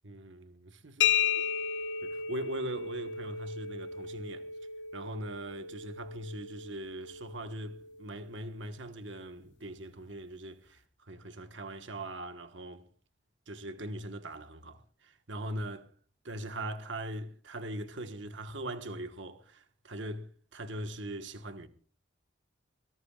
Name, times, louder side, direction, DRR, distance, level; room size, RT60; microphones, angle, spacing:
voice 1, 0.0-1.1 2.0-4.5 4.9-12.9 13.5-15.9 16.2-21.7, right 1 dB, 75° right, 1.5 m, -41 dB
sound 1, 1.0-8.6, left 7 dB, 65° left, 0.7 m, -34 dB
24.5 x 17.5 x 2.5 m
head